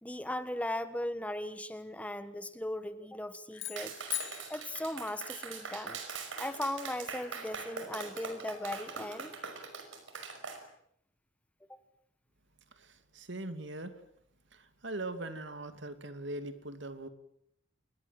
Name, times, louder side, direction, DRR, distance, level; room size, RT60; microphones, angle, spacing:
voice 1, 0.0-4.0 4.5-6.0 6.4-9.3 11.7-11.8, left 1 dB, 5° left, 11 dB, 1.3 m, -38 dB
sound 1, 3.5-5.8, left 15 dB, 80° left, 3.4 m, -41 dB
Clapping, 3.8-10.6, right 5 dB, 85° right, 5.6 m, -42 dB
voice 2, 12.8-14.0 14.5-17.1, right 2 dB, 65° right, 9 dB, 2.5 m, -41 dB
27.5 x 21.5 x 7.6 m, 0.71 s
head